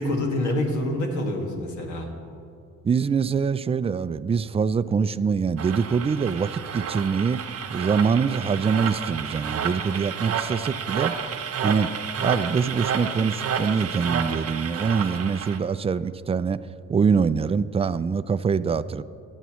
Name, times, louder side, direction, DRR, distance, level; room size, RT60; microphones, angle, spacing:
voice 1, 0.0-2.1, left 1 dB, 75° left, 1 dB, 2.0 m, -26 dB
voice 2, 2.8-7.4 7.7-11.1 11.6-16.6 16.9-19.0, right 6 dB, 20° right, 14 dB, 0.3 m, -24 dB
sound 1, 5.6-15.6, right 7 dB, 50° right, 0.8 m, -30 dB
22.0 x 8.2 x 3.1 m, 2.5 s
cardioid pair, 90°, 30 cm